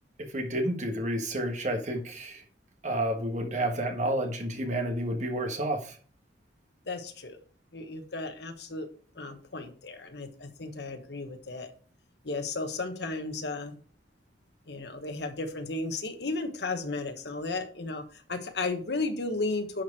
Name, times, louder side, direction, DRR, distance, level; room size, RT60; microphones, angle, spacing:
voice 1, 0.3-2.4 2.8-5.9, right 1 dB, 40° right, 5 dB, 1.4 m, -30 dB
voice 2, 6.9-7.4 7.7-8.9 9.1-11.7 12.2-13.8 14.7-19.8, left 3 dB, 70° left, 7 dB, 1.3 m, -34 dB
10.5 x 4.6 x 4.7 m, 0.43 s
head